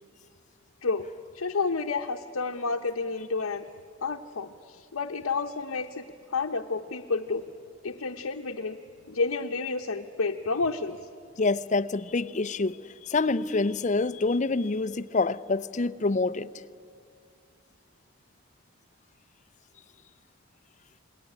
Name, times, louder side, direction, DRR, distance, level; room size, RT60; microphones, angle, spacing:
voice 1, 1.3-3.6 4.0-7.4 7.8-8.8 9.1-11.0, left 4 dB, 80° left, 0.9 m, -30 dB
voice 2, 11.4-12.8 13.0-16.5, left 3 dB, 35° left, 0.6 m, -26 dB
28.0 x 19.5 x 9.9 m
head